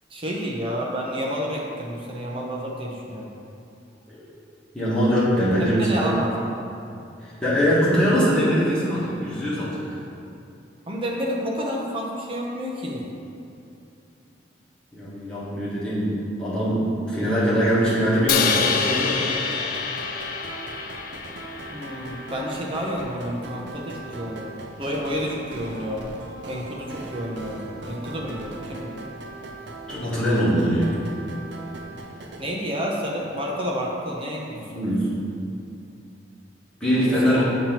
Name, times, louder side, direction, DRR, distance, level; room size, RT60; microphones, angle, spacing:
voice 1, 0.1-3.3 5.6-6.3 10.9-13.1 21.7-24.5 24.8-26.1 26.5-29.0 32.4-34.8 37.0-37.4, equal, 30° right, -2 dB, 0.7 m, -30 dB
voice 2, 4.7-6.1 7.2-9.9 14.9-19.2 29.9-31.0 34.7-35.1 36.8-37.4, equal, 5° left, -10 dB, 1.5 m, -22 dB
sound 1, 17.7-32.4, right 2 dB, 75° right, 0.6 m, -39 dB
Crash cymbal, 18.3-22.5, left 6 dB, 50° left, 0.4 m, -26 dB
7.2 x 2.9 x 5.8 m, 2.6 s
head